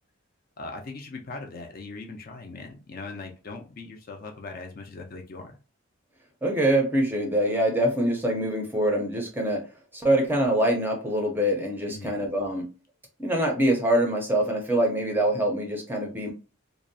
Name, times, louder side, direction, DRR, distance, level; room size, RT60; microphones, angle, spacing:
voice 1, 0.6-5.5 11.9-12.1, left 3 dB, 40° left, 3 dB, 0.4 m, -40 dB
voice 2, 6.4-9.7 9.9-12.7 13.2-16.3, right 1 dB, 10° right, 1 dB, 0.5 m, -24 dB
2.6 x 2.0 x 2.6 m, 0.34 s
head